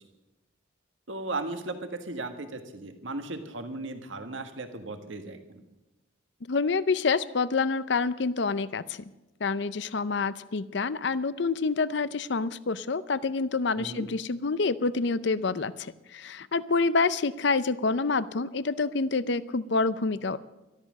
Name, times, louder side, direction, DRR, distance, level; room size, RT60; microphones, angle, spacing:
voice 1, 1.1-5.6 13.8-14.1, right 2 dB, 80° right, 7 dB, 1.6 m, -36 dB
voice 2, 6.5-9.0 9.4-15.7 16.1-20.4, left 4 dB, 60° left, 16 dB, 0.6 m, -27 dB
13.0 x 13.0 x 6.4 m, 1.0 s
head